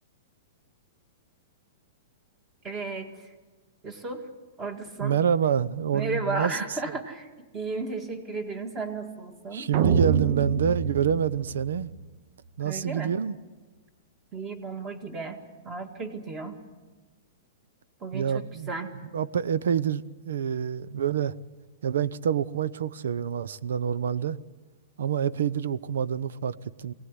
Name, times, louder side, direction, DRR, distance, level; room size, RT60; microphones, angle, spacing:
voice 1, 2.6-3.3 3.8-4.3 4.6-5.1 5.9-7.3 7.5-9.7 12.6-13.1 14.3-16.6 18.0-18.9, right 3 dB, 15° right, 1.9 m, -34 dB
voice 2, 5.0-6.6 6.9-7.0 9.5-11.9 12.6-13.4 18.1-18.7 19.1-21.3 21.8-24.4 25.0-26.9, right 8 dB, 90° right, 0.8 m, -27 dB
sound 1, 9.7-12.0, right 5 dB, 35° right, 0.8 m, -27 dB
23.0 x 18.0 x 9.7 m
supercardioid pair, 170°, 0 cm